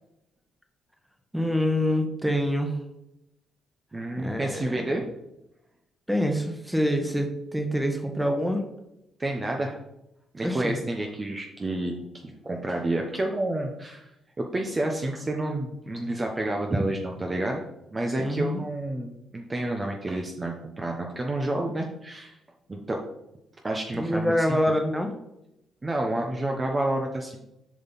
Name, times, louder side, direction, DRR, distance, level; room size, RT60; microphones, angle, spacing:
voice 1, 1.3-2.7 4.2-5.0 6.1-8.6 10.4-10.7 18.2-18.6 23.9-25.1, equal, 5° right, 4 dB, 1.4 m, -26 dB
voice 2, 3.9-5.1 9.2-9.8 10.3-14.1 14.4-17.6 17.9-22.4 22.7-23.0 23.6-24.6 25.8-27.5, right 1 dB, 25° right, 1 dB, 1.0 m, -29 dB
7.3 x 5.5 x 4.1 m, 0.86 s
cardioid pair, 90°, 0 cm